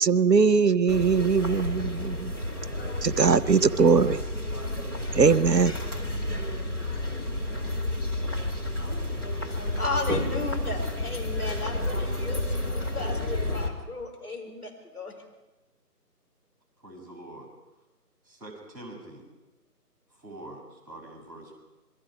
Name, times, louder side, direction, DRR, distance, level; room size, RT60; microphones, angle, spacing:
voice 1, 0.0-2.3 3.0-4.2 5.1-5.7, right 5 dB, 80° right, 18 dB, 0.9 m, -21 dB
sound 1, 0.9-13.7, left 1 dB, 15° left, 1.4 m, -30 dB
voice 2, 9.7-15.1, left 2 dB, 65° left, 2 dB, 5.0 m, -34 dB
voice 3, 16.8-17.5 18.3-19.3 20.2-21.6, right 1 dB, 5° right, -12 dB, 6.0 m, -44 dB
27.0 x 22.0 x 5.0 m, 1.1 s
figure-of-eight pair, 160°, 49 cm